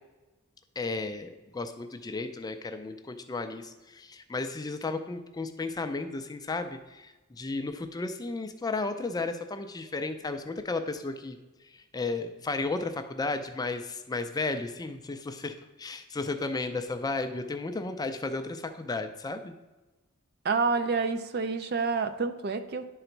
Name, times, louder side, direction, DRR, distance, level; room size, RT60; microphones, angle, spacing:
voice 1, 0.8-11.4 11.7-19.5, left 3 dB, 15° left, 7 dB, 0.4 m, -34 dB
voice 2, 20.4-22.9, right 4 dB, 45° right, 9 dB, 0.5 m, -28 dB
10.5 x 3.9 x 4.5 m, 1.1 s
head